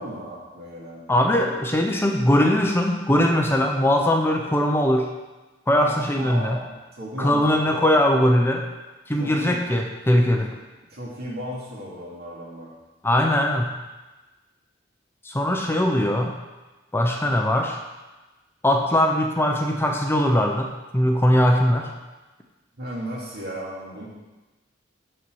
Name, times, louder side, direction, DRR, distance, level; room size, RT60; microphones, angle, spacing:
voice 1, 0.0-1.1 5.8-8.0 9.1-9.6 10.9-12.7 22.8-24.0, equal, 55° right, -4 dB, 2.5 m, -35 dB
voice 2, 1.1-5.1 5.7-6.6 7.2-8.6 9.1-10.5 13.0-13.7 15.2-16.3 16.9-17.8 18.6-21.9, left 1 dB, 10° left, 2 dB, 0.6 m, -20 dB
13.0 x 4.4 x 4.7 m, 1.1 s
head